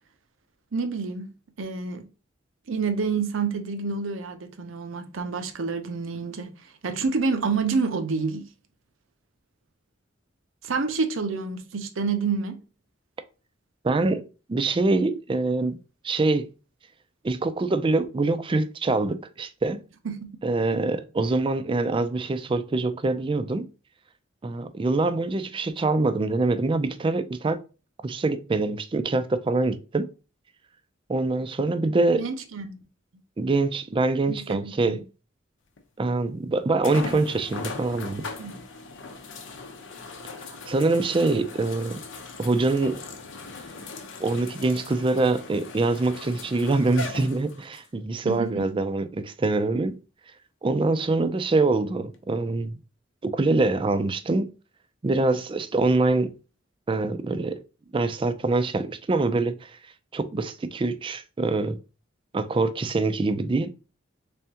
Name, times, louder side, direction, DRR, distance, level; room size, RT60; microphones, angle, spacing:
voice 1, 0.7-1.3 1.6-2.1 2.7-6.5 6.8-8.5 10.6-12.6 20.0-20.3 32.1-32.9 34.3-35.0 38.4-38.6 48.2-48.6, right 4 dB, 85° right, 0.7 m, -28 dB
voice 2, 13.8-14.2 14.5-15.8 16.0-16.5 17.2-19.8 20.4-23.7 24.4-27.6 28.0-30.1 31.1-32.2 33.4-35.0 36.0-38.3 40.7-42.0 42.4-43.0 44.2-50.0 50.6-52.8 53.2-54.5 55.0-56.3 56.9-57.6 57.9-59.8 60.1-61.8 62.3-63.7, right 3 dB, 25° right, 0.4 m, -24 dB
sound 1, 35.8-35.9 36.8-47.9 48.6-48.7 52.1-52.2, left 3 dB, 70° left, 0.7 m, -39 dB
3.4 x 3.4 x 2.8 m
head